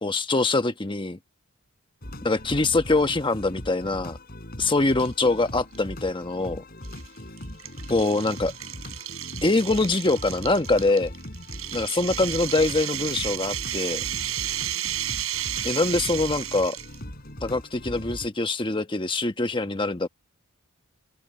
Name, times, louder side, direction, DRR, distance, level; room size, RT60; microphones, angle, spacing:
voice 1, 0.0-1.2 2.2-4.2 4.6-6.6 7.9-8.5 9.4-11.1 11.7-14.0 15.6-16.8 17.4-20.1, left 2 dB, 25° left, 1.1 m, -24 dB
sound 1, 2.0-18.3, left 1 dB, 45° left, 7.1 m, -40 dB
sound 2, 4.9-5.3 5.7-5.8 6.8-17.0, right 13 dB, 75° right, 4.8 m, -33 dB
head